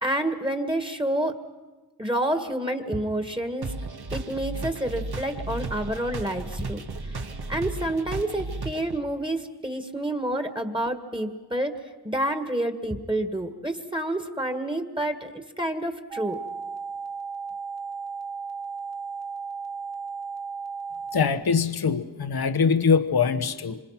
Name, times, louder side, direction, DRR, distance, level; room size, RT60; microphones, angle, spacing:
voice 1, 0.0-1.3 2.0-3.7 4.1-6.8 7.5-11.8 12.0-16.4, right 1 dB, 10° right, 8 dB, 1.9 m, -28 dB
sound 1, 3.6-9.0, right 3 dB, 65° right, 1.8 m, -34 dB
sound 2, 16.1-21.3, right 5 dB, 40° right, 2.4 m, -35 dB
voice 2, 21.1-23.8, left 5 dB, 65° left, 11 dB, 1.1 m, -23 dB
26.0 x 26.0 x 5.9 m, 1.3 s
wide cardioid pair, 85°, 41 cm